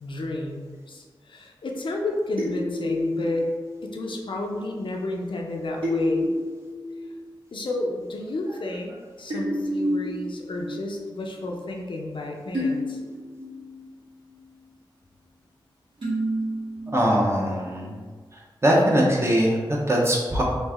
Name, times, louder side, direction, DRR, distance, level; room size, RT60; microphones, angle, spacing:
voice 1, 0.0-3.5 3.8-6.3 7.5-13.0, left 2 dB, 70° left, 1 dB, 0.5 m, -31 dB
sound 1, 2.4-4.0 5.8-7.1 7.6-7.7 9.3-11.0 11.4-11.5 12.5-13.9 16.0-17.3, left 1 dB, 80° right, 1.4 m, -29 dB
voice 2, 16.9-17.9 18.6-20.4, equal, 30° right, -3 dB, 0.9 m, -21 dB
3.1 x 2.5 x 3.5 m, 1.5 s
cardioid pair, 55°, 9 cm